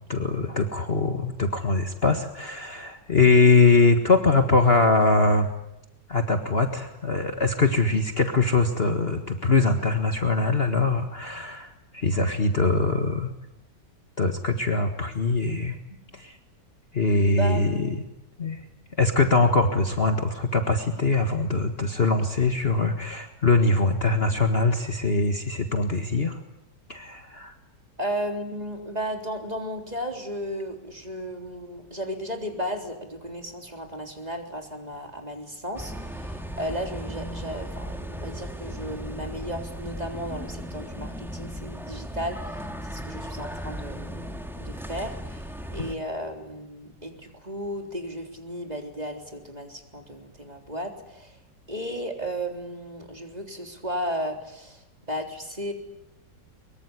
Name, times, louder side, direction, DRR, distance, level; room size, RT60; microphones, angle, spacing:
voice 1, 0.1-5.5 6.1-13.3 14.2-15.8 16.1-16.4 16.9-18.0 18.4-18.6 19.0-26.4 26.9-27.5, left 3 dB, 35° left, 6 dB, 1.8 m, -22 dB
voice 2, 17.4-17.9 28.0-51.4 51.7-55.7, equal, 20° right, 4 dB, 3.8 m, -34 dB
sound 1, 35.7-45.9, equal, ahead, 2.3 m, -36 dB
23.5 x 23.5 x 9.9 m, 0.88 s
omnidirectional pair, 1.9 m